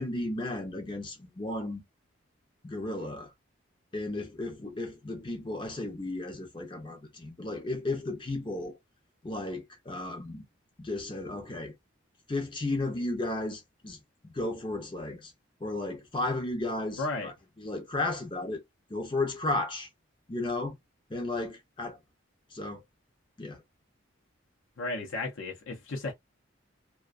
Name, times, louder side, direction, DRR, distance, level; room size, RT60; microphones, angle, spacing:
voice 1, 0.0-1.8 2.6-3.3 3.9-8.8 9.2-10.4 10.8-11.7 12.3-14.0 14.2-15.3 15.6-18.6 18.9-19.9 20.3-20.7 21.1-22.0 22.5-22.8 23.4-23.6, left 2 dB, 25° left, 0.5 m, -34 dB
voice 2, 17.0-17.3 24.8-26.1, left 2 dB, 75° left, 0.6 m, -34 dB
2.4 x 2.2 x 2.3 m
head